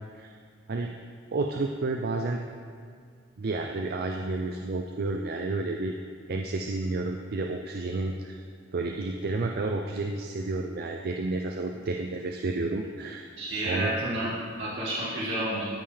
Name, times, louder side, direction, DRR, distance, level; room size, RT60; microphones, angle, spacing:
voice 1, 1.3-2.4 3.4-5.9 6.3-8.4 8.7-13.9, right 3 dB, 55° right, 3 dB, 0.4 m, -31 dB
voice 2, 13.4-14.3 14.6-15.7, right 1 dB, 70° right, -10 dB, 1.9 m, -30 dB
13.0 x 5.6 x 3.4 m, 2.1 s
head